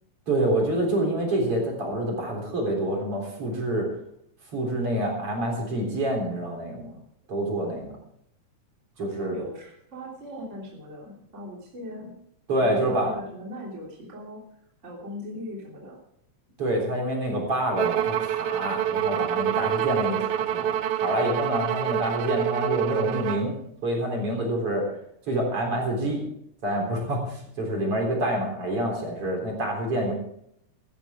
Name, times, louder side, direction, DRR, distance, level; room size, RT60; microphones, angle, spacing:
voice 1, 0.3-3.9 4.5-6.9 7.3-7.9 9.0-9.4 12.5-13.1 16.6-23.6 23.8-24.9 25.3-26.2 26.6-30.1, right 1 dB, 45° right, 0 dB, 4.6 m, -27 dB
voice 2, 8.9-12.1 12.6-14.4 14.8-16.0, left 1 dB, 25° right, -2 dB, 3.3 m, -39 dB
Bowed string instrument, 17.8-23.5, right 11 dB, 80° right, 1.3 m, -27 dB
16.0 x 13.5 x 3.7 m, 0.71 s
omnidirectional pair, 3.5 m